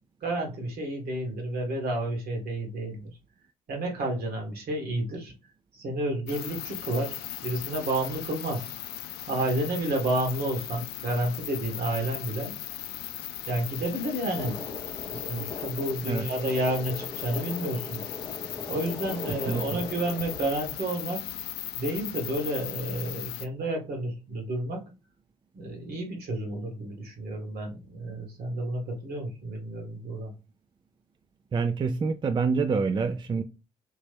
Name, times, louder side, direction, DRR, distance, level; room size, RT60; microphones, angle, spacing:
voice 1, 0.2-3.1 3.7-5.3 5.7-8.7 9.3-12.5 13.5-14.6 15.1-18.0 18.7-21.2 21.7-24.9 25.5-30.3, right 1 dB, 60° right, 1.5 m, -30 dB
sound 1, 6.3-23.5, left 13 dB, 70° left, 0.4 m, -38 dB
sound 2, 14.3-20.4, left 3 dB, 25° left, 0.7 m, -40 dB
voice 2, 31.5-33.4, right 5 dB, 25° right, 0.4 m, -26 dB
3.1 x 3.1 x 3.3 m
hypercardioid pair, 50°, 17 cm